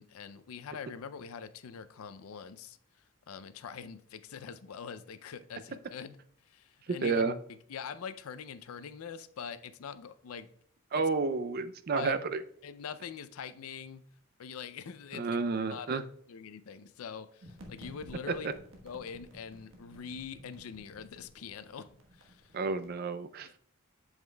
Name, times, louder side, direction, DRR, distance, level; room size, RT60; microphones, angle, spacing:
voice 1, 0.0-2.8 3.3-6.2 6.5-7.2 7.7-10.5 10.9-11.1 11.9-12.2 12.6-14.0 14.4-15.4 15.7-16.0 16.3-18.5 18.8-21.9 22.1-22.6 23.4-23.6, left 6 dB, 90° left, 0.4 m, -43 dB
voice 2, 7.0-7.4 10.9-12.4 15.1-16.0 22.5-23.5, right 4 dB, 45° right, 0.4 m, -30 dB
sound 1, 17.4-22.9, equal, 65° right, 1.2 m, -54 dB
7.9 x 7.2 x 2.2 m
head